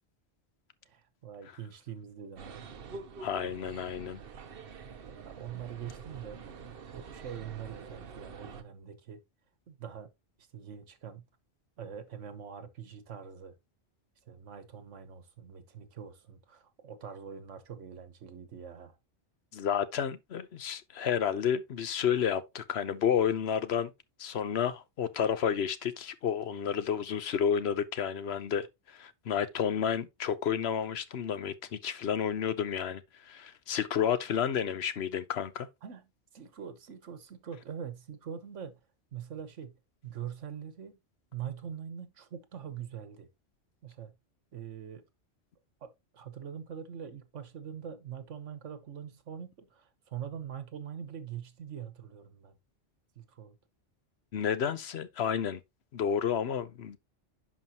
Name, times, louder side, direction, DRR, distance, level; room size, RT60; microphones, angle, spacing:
voice 1, 0.9-2.6 5.2-6.4 6.9-9.2 9.7-10.1 10.5-11.2 11.8-13.6 14.3-19.0 35.8-36.1 36.3-38.8 39.1-39.7 40.0-41.0 41.3-43.3 43.8-44.1 44.5-45.0 45.8-52.5 53.2-53.5, right 8 dB, 75° right, 1.4 m, -43 dB
sound 1, 2.4-8.6, right 5 dB, 55° right, 1.0 m, -46 dB
voice 2, 3.2-4.2 19.5-23.9 24.2-35.7 54.3-55.6 55.9-57.0, left 8 dB, 60° left, 1.0 m, -31 dB
11.0 x 5.0 x 2.9 m
omnidirectional pair, 1.3 m